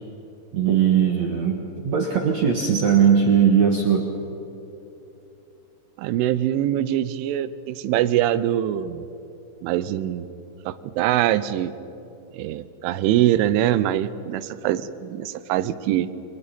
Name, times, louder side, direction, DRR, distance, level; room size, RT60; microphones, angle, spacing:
voice 1, 0.5-4.1, right 7 dB, 75° right, 1 dB, 1.6 m, -19 dB
voice 2, 6.0-9.0 9.6-10.3 10.7-11.7 12.3-16.1, right 12 dB, 90° right, 14 dB, 3.2 m, -23 dB
29.0 x 25.5 x 4.2 m, 2.9 s
omnidirectional pair, 5.4 m